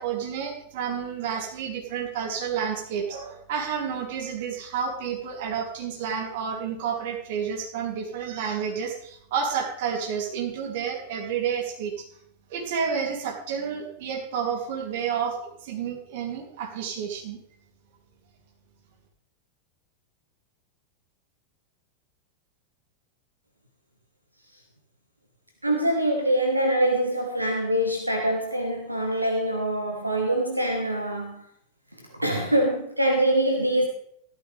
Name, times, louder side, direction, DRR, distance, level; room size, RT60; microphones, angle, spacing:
voice 1, 0.0-12.1 12.5-17.4, right 7 dB, 50° right, 1 dB, 2.9 m, -30 dB
voice 2, 25.6-31.4 32.2-33.9, right 1 dB, 85° right, 2 dB, 1.5 m, -24 dB
14.5 x 13.0 x 3.4 m, 0.67 s
figure-of-eight pair, 90°, 0 cm